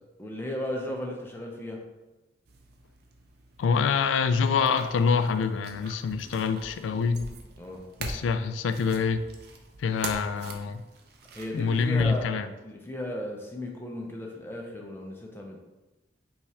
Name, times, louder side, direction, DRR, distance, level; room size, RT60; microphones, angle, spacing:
voice 1, 0.2-1.8 7.6-7.9 11.3-15.6, left 1 dB, 10° left, 0 dB, 0.5 m, -35 dB
sound 1, 2.5-12.0, right 3 dB, 55° right, 0.5 m, -43 dB
voice 2, 3.6-7.3 8.0-9.2 9.8-10.8 11.5-12.5, left 5 dB, 85° left, 10 dB, 0.3 m, -26 dB
5.4 x 2.4 x 3.2 m, 1.1 s
head